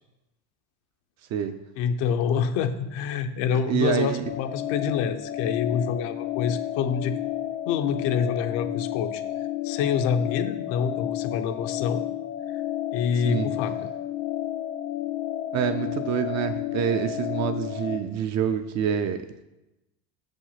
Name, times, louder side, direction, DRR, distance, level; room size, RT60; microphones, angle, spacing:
voice 1, 1.8-7.2 7.7-9.2 9.6-12.0 12.9-13.8, left 7 dB, 70° left, 8 dB, 0.8 m, -26 dB
voice 2, 3.7-4.2 13.2-13.5 15.5-19.4, right 8 dB, 40° right, 9 dB, 0.4 m, -26 dB
sound 1, 4.2-18.0, left 13 dB, 30° left, 0.4 m, -31 dB
6.4 x 5.3 x 5.7 m, 0.96 s
cardioid pair, 160°, 45 cm